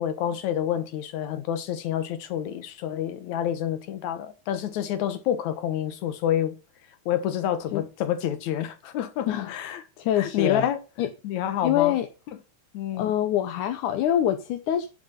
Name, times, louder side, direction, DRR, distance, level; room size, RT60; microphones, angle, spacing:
voice 1, 0.0-6.6 7.1-9.8 10.2-10.8 11.2-12.0 12.7-13.1, left 10 dB, 75° left, 2.5 m, -28 dB
voice 2, 10.0-10.7 11.0-11.1 11.6-12.1 13.0-14.9, left 11 dB, 90° left, 2.5 m, -24 dB
10.5 x 7.5 x 5.8 m
omnidirectional pair, 3.4 m